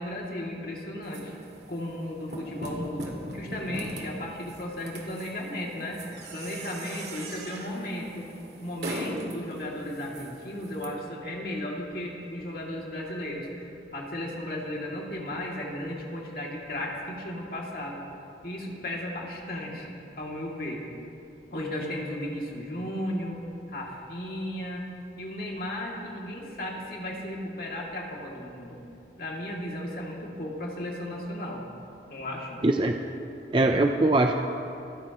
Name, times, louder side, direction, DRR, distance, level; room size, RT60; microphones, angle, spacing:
voice 1, 0.0-1.3 1.7-6.0 6.3-8.3 8.6-18.0 18.4-20.8 21.5-23.4 23.7-24.9 25.2-28.8 29.2-31.6 32.1-32.6, left 1 dB, 55° left, -2 dB, 2.5 m, -35 dB
sound 1, 1.0-10.9, right 1 dB, 70° right, 2.2 m, -41 dB
voice 2, 32.6-33.0 33.5-34.3, right 2 dB, 30° right, 4 dB, 0.5 m, -21 dB
27.0 x 13.5 x 3.0 m, 2.7 s
head